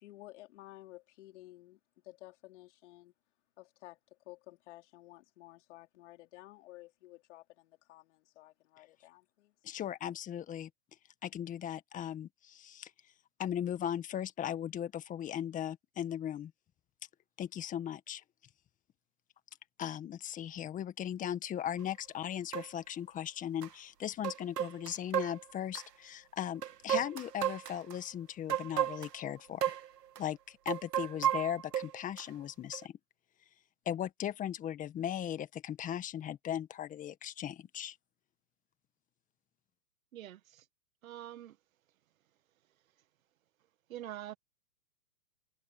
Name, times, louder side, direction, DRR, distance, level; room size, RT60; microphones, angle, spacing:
voice 1, 0.0-3.1 3.6-9.5, left 17 dB, 45° left, 3.6 m, -54 dB
voice 2, 9.6-10.7 11.2-12.9 13.4-16.5 17.4-18.2 19.8-29.7 30.2-32.9 33.9-38.0, left 10 dB, 15° left, 1.8 m, -38 dB
sound 1, 21.8-21.9 22.5-22.7 23.6-23.7 24.2-25.9 26.6-28.0 28.5-29.2 29.6-29.9 30.2-30.3 30.7-32.2 32.7-32.9, right 10 dB, 80° right, 1.8 m, -33 dB
voice 3, 40.1-40.7 41.0-41.6 43.9-44.3, right 12 dB, 60° right, 1.8 m, -45 dB
hypercardioid pair, 140°, 47 cm